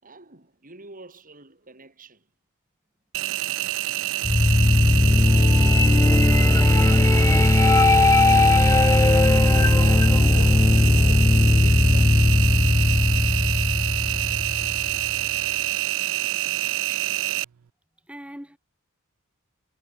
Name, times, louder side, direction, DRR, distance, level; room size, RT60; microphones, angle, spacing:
voice 1, 0.0-2.3 9.4-12.3 16.9-17.4, right 3 dB, 40° right, 5.5 m, -45 dB
Engine, 3.1-17.4, right 17 dB, 60° right, 0.4 m, -27 dB
sound 1, 4.2-15.2, left 2 dB, 15° left, 0.4 m, -18 dB
voice 2, 5.8-7.6 18.1-18.6, equal, 5° right, 6.9 m, -41 dB
head